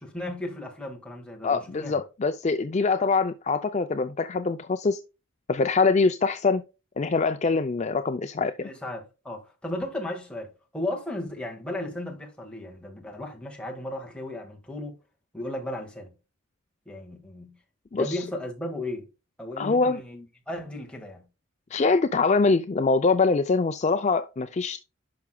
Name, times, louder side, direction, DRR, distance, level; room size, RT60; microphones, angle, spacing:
voice 1, 0.0-2.0 8.6-15.0 15.3-16.1 16.8-17.5 17.9-19.1 19.4-21.2, left 1 dB, 5° left, 1.7 m, -35 dB
voice 2, 1.4-5.0 5.5-6.6 7.0-8.7 17.9-18.2 19.6-20.0 21.7-24.8, left 4 dB, 30° left, 0.4 m, -24 dB
10.5 x 6.0 x 2.2 m
head